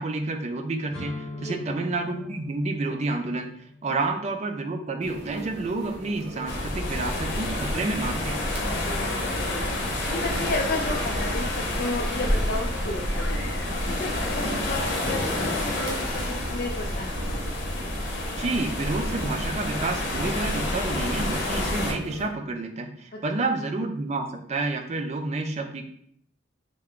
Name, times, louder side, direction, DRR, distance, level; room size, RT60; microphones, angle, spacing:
voice 1, 0.0-3.5 3.8-8.4 18.4-25.8, right 3 dB, 35° right, 5 dB, 0.4 m, -29 dB
sound 1, 0.9-8.7, left 2 dB, 5° left, 0.9 m, -44 dB
sound 2, 5.0-22.3, right 1 dB, 65° right, 0.7 m, -40 dB
sound 3, 6.5-21.9, left 1 dB, 70° left, 0.8 m, -28 dB
voice 2, 8.8-9.7 10.1-13.4 13.9-17.2, left 2 dB, 50° left, -1 dB, 0.4 m, -33 dB
3.4 x 2.2 x 3.6 m, 0.66 s
head